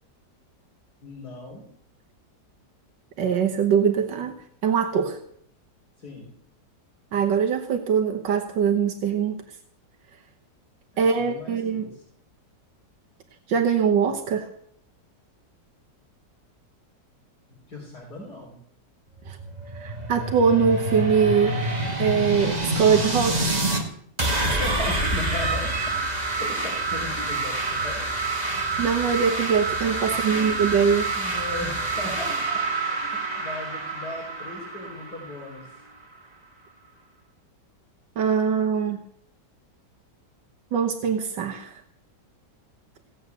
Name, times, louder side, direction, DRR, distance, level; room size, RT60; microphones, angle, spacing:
voice 1, 1.0-1.7 6.0-6.3 10.9-12.0 17.7-18.6 24.4-25.7 26.0-28.1 28.8-28.9 30.0-30.7 31.1-35.7, left 2 dB, 60° left, -6 dB, 4.6 m, -37 dB
voice 2, 3.2-5.2 7.1-9.4 11.0-11.9 13.5-14.5 19.3-19.4 19.7-23.8 28.8-31.1 38.2-39.0 40.7-41.8, right 6 dB, 80° right, 4 dB, 1.8 m, -23 dB
sound 1, 19.2-23.8 24.2-35.8, right 2 dB, 25° right, 1.9 m, -27 dB
16.5 x 8.1 x 8.1 m, 0.68 s
omnidirectional pair, 1.9 m